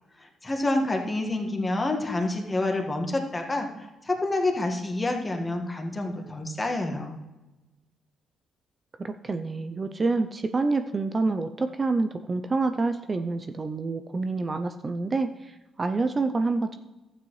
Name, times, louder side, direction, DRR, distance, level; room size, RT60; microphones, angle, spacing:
voice 1, 0.2-7.2, left 2 dB, 20° left, 3 dB, 1.6 m, -28 dB
voice 2, 9.0-16.8, right 3 dB, 30° right, 8 dB, 0.5 m, -27 dB
12.5 x 9.0 x 3.2 m, 1.1 s
cardioid pair, 90°, 0 cm